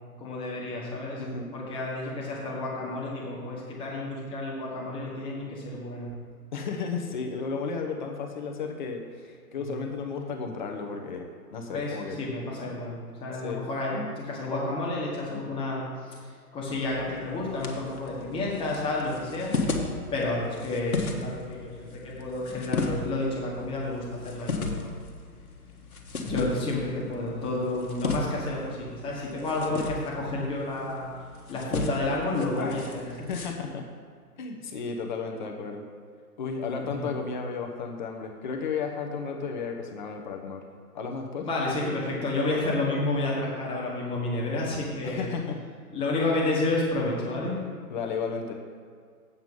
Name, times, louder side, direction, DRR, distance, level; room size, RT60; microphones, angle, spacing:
voice 1, 0.2-1.2 1.5-6.1 9.6-9.8 11.7-16.2 16.5-19.5 20.1-24.9 26.2-31.1 31.5-33.3 36.8-37.1 41.4-45.2 45.9-47.6, left 2 dB, 10° left, -4 dB, 1.5 m, -30 dB
voice 2, 1.2-1.5 6.5-12.2 13.4-13.6 33.3-33.8 34.4-35.8 36.4-40.6 40.9-41.5 45.0-45.6 47.9-48.5, left 5 dB, 30° left, 2 dB, 1.0 m, -33 dB
sound 1, 16.7-33.5, left 3 dB, 65° left, 1.5 m, -35 dB
8.2 x 7.2 x 5.5 m, 2.1 s
figure-of-eight pair, 125°, 46 cm